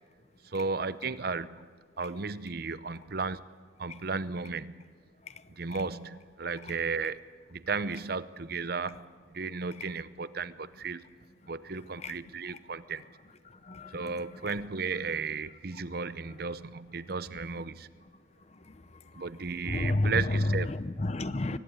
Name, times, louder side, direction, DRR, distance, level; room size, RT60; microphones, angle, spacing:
voice 1, 0.4-1.6 2.0-3.4 3.8-4.7 5.6-7.2 7.5-9.0 9.3-11.1 11.5-13.0 13.9-17.9 19.1-20.7, right 4 dB, 55° right, 0.7 m, -34 dB
voice 2, 19.7-20.4 20.7-21.6, left 2 dB, 35° left, 0.8 m, -30 dB
23.5 x 19.0 x 8.9 m
head